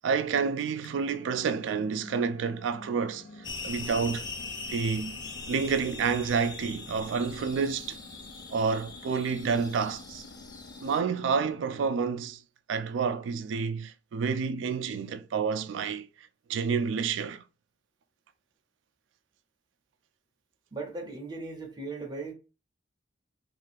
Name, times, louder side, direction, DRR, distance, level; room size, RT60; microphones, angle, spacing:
voice 1, 0.0-3.2 3.6-4.3 4.7-5.2 5.5-8.0 8.5-10.2 10.8-12.4 12.7-16.1 16.5-17.4, right 5 dB, 85° right, 0.3 m, -29 dB
sound 1, 0.8-11.7, left 2 dB, 80° left, 0.5 m, -50 dB
sound 2, 3.4-11.0, left 4 dB, 20° left, 0.4 m, -41 dB
voice 2, 20.7-22.3, right 3 dB, 25° right, 0.6 m, -38 dB
2.5 x 2.4 x 3.3 m
head